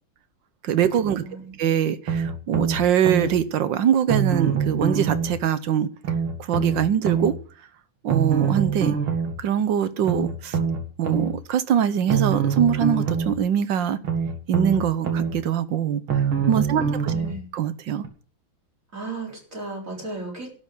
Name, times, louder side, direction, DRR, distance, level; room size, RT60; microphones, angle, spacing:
voice 1, 0.6-1.2 1.6-5.9 6.4-7.3 8.0-9.0 9.4-10.6 11.0-14.0 14.5-17.1 17.5-18.0, right 9 dB, 65° right, 1.6 m, -23 dB
voice 2, 1.2-1.6 16.7-17.5 18.9-20.5, right 3 dB, 40° right, 4.4 m, -35 dB
sound 1, 2.1-3.3 4.1-5.3 6.0-7.3 8.1-9.3 10.0-11.3 12.1-13.3 14.0-15.3 16.1-17.3 18.0-18.1, right 6 dB, 85° right, 3.1 m, -24 dB
12.0 x 7.2 x 9.9 m
omnidirectional pair, 2.2 m